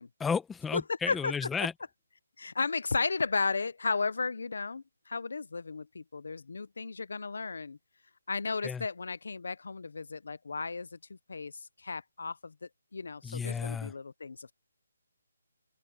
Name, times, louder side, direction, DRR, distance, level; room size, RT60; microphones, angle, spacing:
voice 1, 0.2-1.7 8.6-8.8 13.2-13.9, left 6 dB, 5° left, 1.1 m, -33 dB
voice 2, 0.7-1.3 2.4-7.8 8.3-12.5 12.9-14.5, left 4 dB, 65° left, 0.6 m, -34 dB
hypercardioid pair, 175°, 0 cm